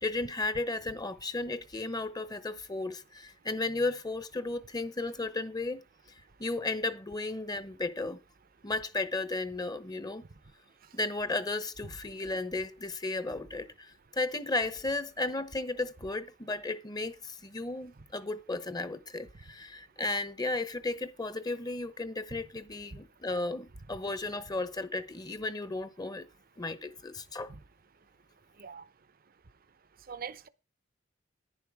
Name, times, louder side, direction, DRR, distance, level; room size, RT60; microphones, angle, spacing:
voice 1, 0.0-5.8 6.4-8.2 8.6-10.2 10.9-26.3 26.6-27.5, left 2 dB, 20° left, 0.9 m, -34 dB
voice 2, 28.5-28.9 30.0-30.5, right 6 dB, 45° right, 0.7 m, -44 dB
11.0 x 10.0 x 4.8 m
head